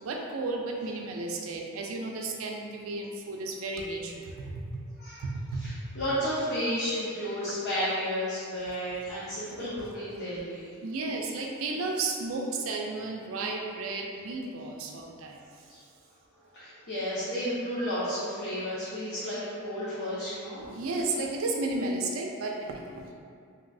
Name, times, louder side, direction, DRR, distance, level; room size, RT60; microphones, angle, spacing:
voice 1, 0.0-4.5 5.2-5.6 9.6-9.7 10.8-15.4 20.7-23.0, right 3 dB, 85° right, 1 dB, 0.4 m, -33 dB
voice 2, 5.6-10.7 15.7-15.8 16.5-20.8, equal, 55° left, -10 dB, 0.6 m, -32 dB
3.0 x 2.7 x 2.6 m, 2.3 s
head